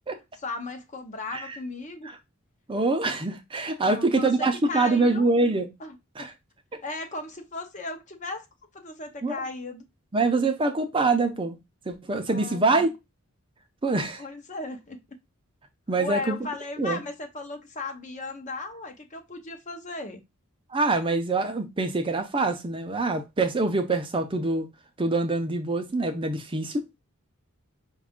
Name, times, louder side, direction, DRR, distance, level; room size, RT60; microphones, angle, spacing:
voice 1, 0.4-2.1 3.8-5.3 5.8-6.3 6.7-8.5 8.7-9.8 12.3-12.9 14.2-15.0 16.0-20.2, left 3 dB, 35° left, 0.7 m, -36 dB
voice 2, 2.7-5.7 6.2-6.3 6.7-6.8 9.2-9.4 10.1-11.6 11.9-12.9 13.8-14.2 15.9-16.3 16.8-17.0 20.7-24.7 25.0-27.0, right 3 dB, 25° right, 0.5 m, -25 dB
5.2 x 2.4 x 3.5 m
head